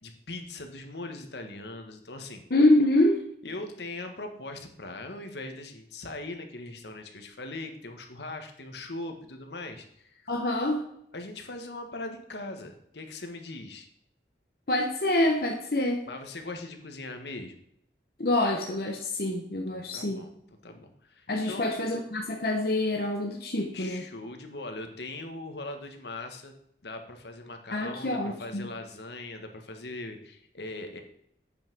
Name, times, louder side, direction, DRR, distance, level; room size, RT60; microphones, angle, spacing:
voice 1, 0.0-2.4 3.4-10.3 11.1-13.9 16.1-17.5 19.7-20.3 20.6-21.7 23.7-26.5 26.8-31.0, left 2 dB, 75° left, 5 dB, 1.4 m, -40 dB
voice 2, 2.5-3.2 10.3-10.8 14.7-16.0 18.2-20.3 21.3-24.0 27.7-28.7, left 1 dB, 55° left, 1 dB, 1.0 m, -26 dB
8.6 x 5.7 x 6.2 m, 0.70 s
head